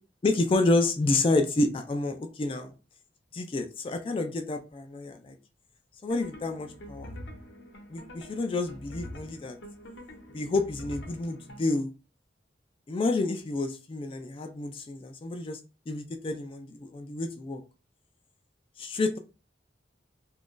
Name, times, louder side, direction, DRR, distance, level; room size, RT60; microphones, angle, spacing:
voice 1, 0.2-2.7 3.3-5.4 6.0-7.1 7.9-9.6 10.3-11.9 12.9-15.6 15.9-17.6 18.8-19.2, left 2 dB, 30° left, 0.3 m, -29 dB
sound 1, 6.1-11.6, equal, 85° left, 0.8 m, -45 dB
2.5 x 2.3 x 3.6 m
head